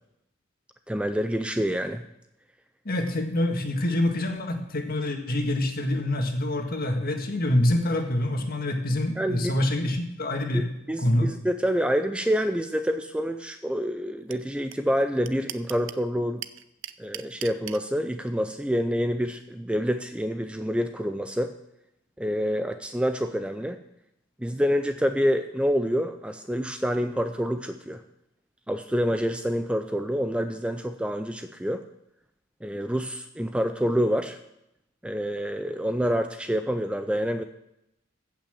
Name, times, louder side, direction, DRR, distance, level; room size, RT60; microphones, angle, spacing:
voice 1, 0.9-2.0 9.2-9.5 10.5-16.4 17.0-21.6 22.2-23.8 24.4-28.0 28.7-31.8 32.6-34.4 35.0-37.4, equal, 5° right, 8 dB, 0.4 m, -27 dB
voice 2, 2.8-10.7 11.0-11.3, left 1 dB, 45° left, 4 dB, 1.8 m, -26 dB
sound 1, 14.3-14.4 14.7-14.8 15.0-16.0 16.4-17.8, right 13 dB, 65° right, 0.5 m, -36 dB
15.0 x 5.9 x 7.6 m, 0.84 s
head